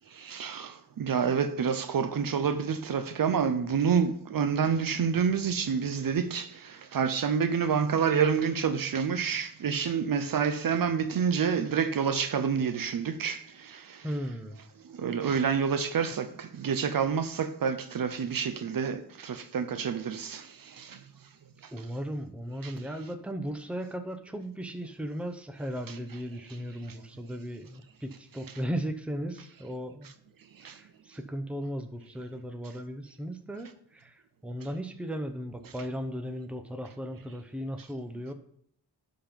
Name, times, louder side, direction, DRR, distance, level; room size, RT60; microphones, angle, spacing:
voice 1, 0.2-6.5 6.9-13.4 15.0-20.4 20.8-20.9 22.6-22.7, right 6 dB, 55° right, 0.7 m, -28 dB
voice 2, 14.0-14.6 21.7-30.1 30.6-38.3, equal, 5° right, 0.7 m, -36 dB
11.5 x 3.9 x 5.2 m
wide cardioid pair, 110°, 40 cm